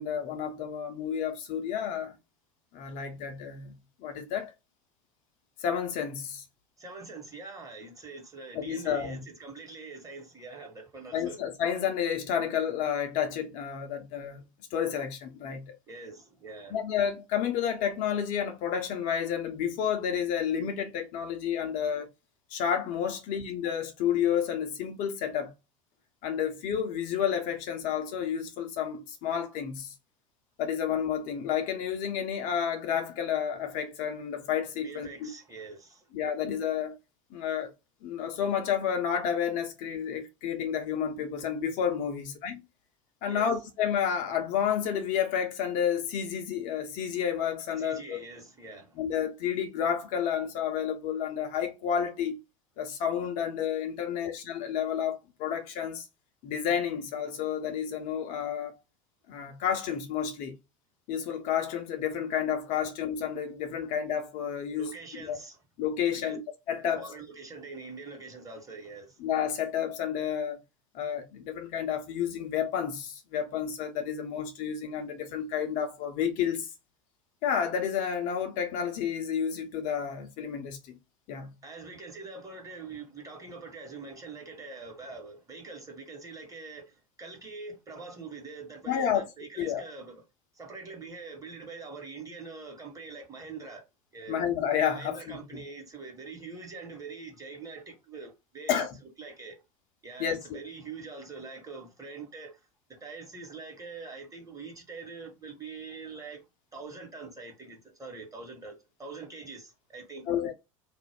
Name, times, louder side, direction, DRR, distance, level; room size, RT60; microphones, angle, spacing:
voice 1, 0.0-2.1 2.7-3.7 4.0-4.5 5.6-6.4 8.5-9.2 11.1-14.4 14.7-15.7 16.7-22.1 22.5-25.5 26.2-29.9 30.6-35.3 36.1-37.0 37.3-37.7 38.0-42.6 43.2-48.2 49.0-52.4 52.8-56.0 56.4-58.7 59.3-60.6 61.1-65.4 65.8-66.4 66.7-67.1 69.2-70.6 70.9-76.7 77.4-81.0 81.3-81.5 88.9-89.3 89.6-89.9 94.3-95.6 98.7-99.0 100.2-100.6 110.3-110.5, left 8 dB, 50° left, 0.7 m, -30 dB
voice 2, 6.8-11.4 15.9-16.8 34.8-36.0 43.3-43.5 47.8-49.0 64.8-65.6 66.1-66.4 66.9-69.2 81.6-86.9 87.2-90.2 90.5-93.8 94.1-94.4 94.9-98.9 99.2-99.6 100.0-102.6 102.9-106.4 106.7-110.2, right 4 dB, 20° right, 1.2 m, -44 dB
2.4 x 2.1 x 3.5 m
figure-of-eight pair, 75°, 18 cm